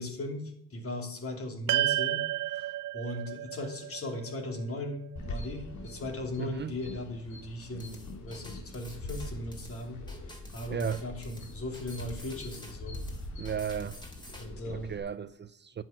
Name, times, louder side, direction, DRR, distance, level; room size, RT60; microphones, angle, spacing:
voice 1, 0.0-10.0 10.2-13.0 14.4-14.9, left 1 dB, 50° left, 3.0 m, -38 dB
sound 1, 1.7-6.2, right 15 dB, 85° right, 0.6 m, -33 dB
sound 2, 5.2-15.0, left 1 dB, 75° left, 2.5 m, -43 dB
voice 2, 6.4-6.7 10.7-11.0 13.4-14.0 14.7-15.8, right 8 dB, 35° right, 0.6 m, -35 dB
sound 3, 7.8-14.5, equal, 15° left, 3.0 m, -49 dB
10.5 x 6.2 x 9.0 m
cardioid pair, 90°, 30 cm